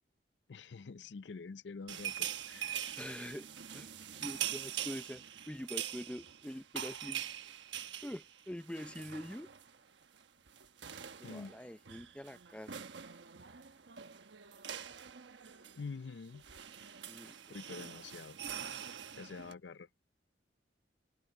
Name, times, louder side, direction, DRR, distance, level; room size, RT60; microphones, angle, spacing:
voice 1, 0.5-2.9 11.2-11.5 15.8-16.4 17.5-18.4 18.9-19.9, left 4 dB, 70° left, 0.5 m, -47 dB
sound 1, 1.9-9.8 10.0-10.2 10.5-19.5, right 10 dB, 75° right, 1.1 m, -44 dB
voice 2, 3.0-3.9 4.2-7.5 8.0-9.5 11.2-12.9 17.1-17.9, equal, 5° left, 0.6 m, -45 dB
head